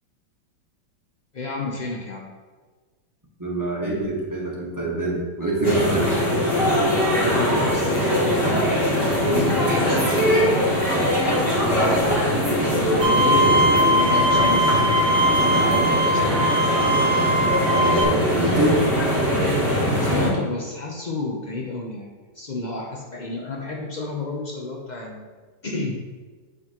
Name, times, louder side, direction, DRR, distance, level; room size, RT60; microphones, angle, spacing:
voice 1, 1.3-2.3 7.1-8.3 9.2-10.9 12.6-16.5 20.0-22.1 22.3-25.3 25.6-26.0, left 3 dB, 90° left, -1 dB, 0.4 m, -31 dB
voice 2, 3.4-6.2 13.1-13.6 17.7-18.8, right 2 dB, 10° right, -6 dB, 1.3 m, -25 dB
sound 1, 5.6-20.3, equal, 30° left, 2.5 m, -21 dB
Bowed string instrument, 13.0-18.0, equal, 65° right, 1.5 m, -20 dB
8.4 x 5.9 x 3.0 m, 1.4 s
omnidirectional pair, 2.0 m